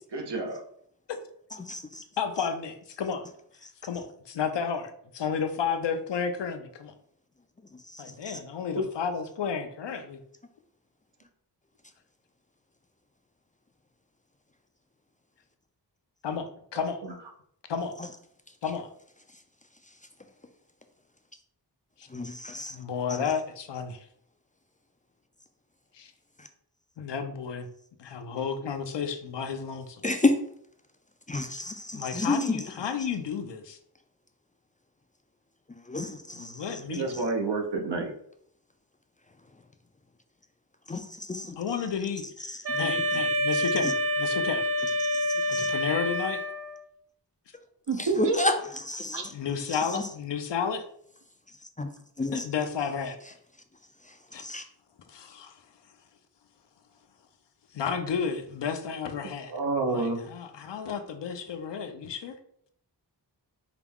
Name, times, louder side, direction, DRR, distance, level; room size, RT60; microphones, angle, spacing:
voice 1, 0.1-0.6 8.8-8.9 17.0-17.1 36.9-38.1 47.9-48.4 49.1-49.2 59.5-60.3, right 3 dB, 75° right, 3 dB, 0.9 m, -29 dB
voice 2, 1.6-2.0 7.9-8.4 18.0-18.1 22.1-22.8 23.1-23.2 26.4-26.5 30.0-30.4 31.3-32.6 35.7-36.8 37.1-37.2 40.9-41.6 42.5-43.2 43.8-43.9 45.0-45.7 48.0-48.5 48.9-49.3 49.7-50.1 51.8-51.9 52.2-52.5 54.4-54.6, left 2 dB, 20° left, 5 dB, 0.3 m, -31 dB
voice 3, 2.2-3.2 3.8-6.9 8.0-10.2 16.2-17.0 17.7-17.9 18.6-18.9 22.7-24.0 25.9-26.1 27.0-27.7 28.0-30.0 31.9-33.8 36.3-37.1 41.6-43.9 44.2-44.6 45.5-46.4 49.3-50.8 52.3-53.2 54.3-54.4 55.1-55.5 57.7-59.6 59.9-62.4, left 6 dB, 75° left, 7 dB, 0.6 m, -32 dB
Wind instrument woodwind instrument, 42.6-46.8, left 1 dB, 35° right, 0.6 m, -27 dB
4.8 x 2.3 x 3.5 m, 0.67 s
wide cardioid pair, 80°, 42 cm